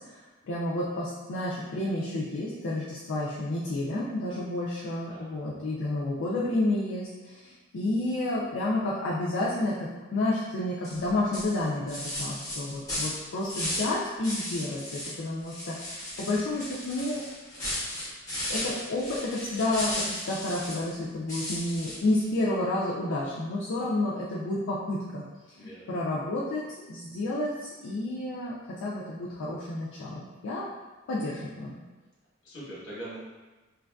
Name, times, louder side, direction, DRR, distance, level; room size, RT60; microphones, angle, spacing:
voice 1, 0.0-17.2 18.5-28.5 28.8-30.7 31.1-31.7, left 2 dB, 80° left, -7 dB, 0.4 m, -30 dB
sound 1, 10.8-11.0 11.3-13.9 14.2-15.2 15.4-20.9 21.3-22.2, left 1 dB, 15° left, 0.8 m, -35 dB
voice 2, 25.6-25.9 32.4-33.2, right 1 dB, 60° left, -7 dB, 1.1 m, -42 dB
3.2 x 2.4 x 2.2 m, 1.2 s
head